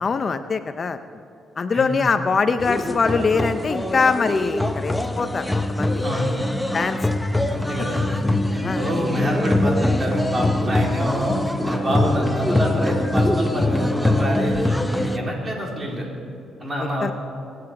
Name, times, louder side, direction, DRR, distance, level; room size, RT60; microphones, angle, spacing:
voice 1, 0.0-1.0 1.6-6.0 6.7-7.0 8.6-8.8 16.8-17.1, left 4 dB, 40° left, 10 dB, 0.5 m, -23 dB
sound 1, 2.6-15.2, left 1 dB, 5° left, 0.8 m, -23 dB
voice 2, 6.0-6.4 7.5-8.2 8.5-11.4 11.6-16.1 16.6-17.1, equal, 30° right, -1 dB, 3.7 m, -26 dB
21.5 x 9.6 x 4.9 m, 2.6 s
cardioid pair, 90°, 0 cm